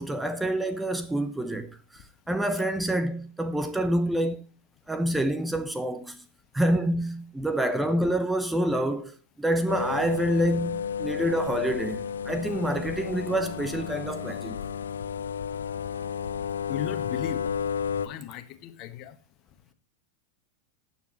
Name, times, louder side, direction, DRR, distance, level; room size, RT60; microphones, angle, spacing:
voice 1, 0.0-4.4 4.9-6.2 6.5-14.6, right 1 dB, 5° right, 0.8 m, -27 dB
sound 1, 9.7-18.1, left 7 dB, 65° left, 0.6 m, -32 dB
voice 2, 16.7-17.5 18.0-19.1, left 11 dB, 40° left, 1.3 m, -35 dB
18.5 x 7.2 x 3.1 m
figure-of-eight pair, 90°, 0 cm